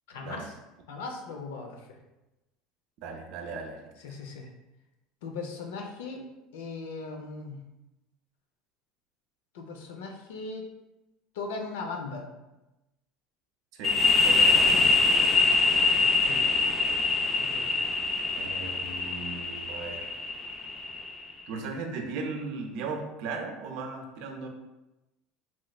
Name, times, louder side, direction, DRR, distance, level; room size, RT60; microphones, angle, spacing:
voice 1, 0.1-0.5 0.9-1.8 4.0-4.5 5.2-6.3 6.5-7.6 9.5-10.7 11.4-12.3 14.7-14.9 16.0-16.4 17.4-17.7, left 4 dB, 90° left, 3 dB, 0.5 m, -38 dB
voice 2, 3.0-3.8 13.7-14.0 14.2-14.9 18.4-20.1 21.5-24.5, right 4 dB, 65° right, 3 dB, 0.5 m, -37 dB
sound 1, 13.8-21.3, left 3 dB, 25° left, 0.4 m, -24 dB
3.1 x 3.0 x 2.3 m, 0.99 s
supercardioid pair, 115°, 0 cm